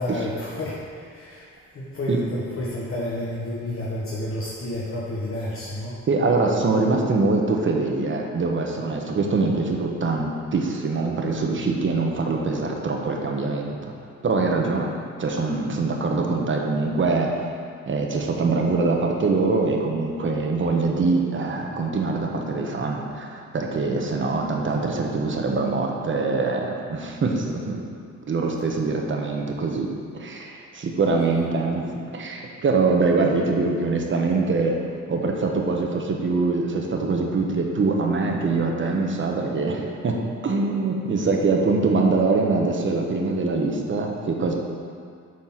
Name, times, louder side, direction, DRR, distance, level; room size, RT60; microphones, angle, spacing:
voice 1, 0.0-1.5 1.7-6.0, left 1 dB, 45° left, -6 dB, 1.4 m, -30 dB
voice 2, 6.1-13.8 14.2-14.9 15.2-17.3 17.9-27.9 28.3-29.9 30.1-31.9 32.1-34.8 35.1-40.2 40.4-44.5, right 3 dB, 40° right, 1 dB, 1.2 m, -23 dB
7.7 x 4.4 x 5.8 m, 2.2 s
cardioid pair, 90°, 30 cm